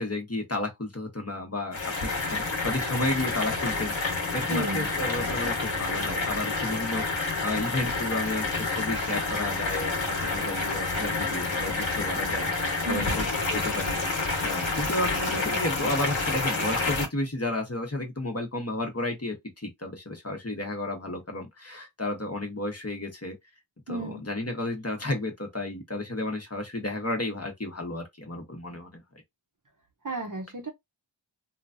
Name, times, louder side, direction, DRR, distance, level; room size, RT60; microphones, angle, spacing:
voice 1, 0.0-14.0 14.4-23.3 23.9-29.0, left 2 dB, 30° left, 1.0 m, -32 dB
sound 1, 1.7-17.1, left 3 dB, 65° left, 1.2 m, -29 dB
voice 2, 4.5-4.9 12.9-13.2 23.9-24.2 30.0-30.7, right 1 dB, 40° right, 0.8 m, -33 dB
3.0 x 2.3 x 2.5 m
wide cardioid pair, 55°, 49 cm